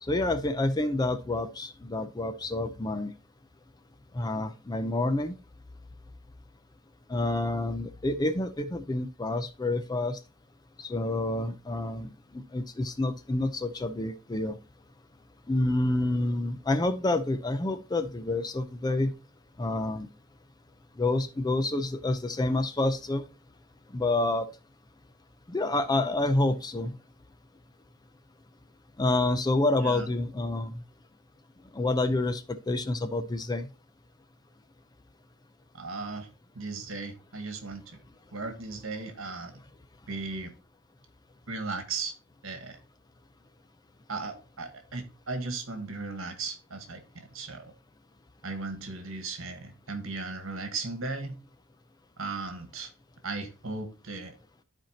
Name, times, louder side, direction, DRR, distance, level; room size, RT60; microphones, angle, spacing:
voice 1, 0.0-3.1 4.1-5.4 7.1-10.2 10.8-14.6 15.5-19.1 19.6-20.1 21.0-23.2 23.9-24.5 25.5-27.0 29.0-30.8 31.7-33.7, left 2 dB, 20° left, 0.4 m, -28 dB
voice 2, 35.7-36.3 36.5-38.0 38.3-39.6 40.1-40.5 41.5-42.1 42.4-42.8 44.1-47.7 48.4-51.4 52.2-52.9 53.2-54.3, right 3 dB, 65° right, 1.4 m, -36 dB
13.0 x 4.4 x 2.8 m
head